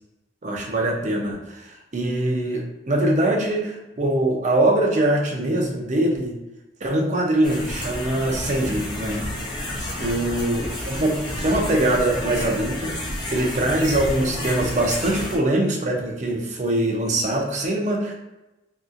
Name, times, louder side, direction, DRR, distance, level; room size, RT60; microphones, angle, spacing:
voice 1, 0.4-6.4 6.8-9.2 10.0-12.9 13.3-18.1, right 1 dB, 40° right, 0 dB, 0.6 m, -23 dB
sound 1, 7.4-15.4, left 1 dB, 25° left, 0.6 m, -30 dB
2.9 x 2.8 x 2.4 m, 0.99 s
head